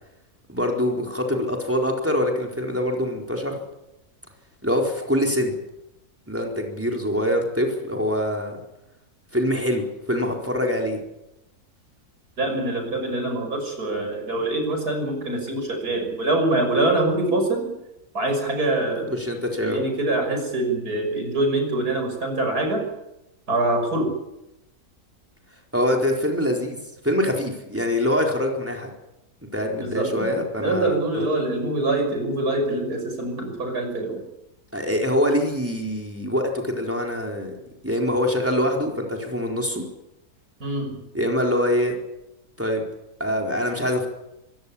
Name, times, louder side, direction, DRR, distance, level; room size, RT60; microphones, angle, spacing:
voice 1, 0.5-3.6 4.6-5.5 6.3-8.6 9.3-11.0 19.1-19.8 25.7-26.8 27.0-28.9 29.5-31.3 34.7-37.5 37.8-39.8 41.1-41.9 42.6-42.9 43.2-44.1, equal, 10° right, 0 dB, 4.4 m, -24 dB
voice 2, 12.4-17.8 18.1-19.2 19.6-22.9 23.5-24.2 29.8-34.2 40.6-41.0, right 2 dB, 75° right, 4 dB, 6.7 m, -24 dB
26.0 x 16.5 x 8.7 m, 0.92 s
omnidirectional pair, 1.6 m